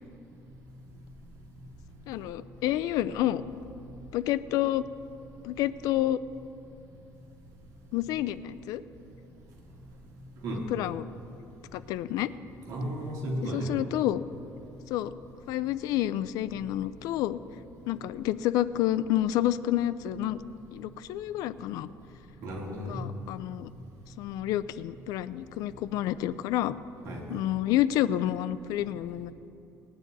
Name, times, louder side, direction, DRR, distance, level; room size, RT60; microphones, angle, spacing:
voice 1, 2.1-3.4 4.1-4.9 5.4-6.2 7.9-8.8 10.5-11.1 11.7-12.3 13.4-14.2 14.9-15.1 15.5-17.4 17.9-20.4 20.7-21.9 22.9-23.7 24.2-26.8 27.3-29.3, left 13 dB, 80° left, 15 dB, 0.4 m, -29 dB
voice 2, 12.7-13.8 22.4-23.0 27.0-27.4, right 1 dB, 65° right, -3 dB, 3.0 m, -34 dB
19.0 x 9.7 x 4.1 m, 2.7 s
cardioid pair, 160°, 6 cm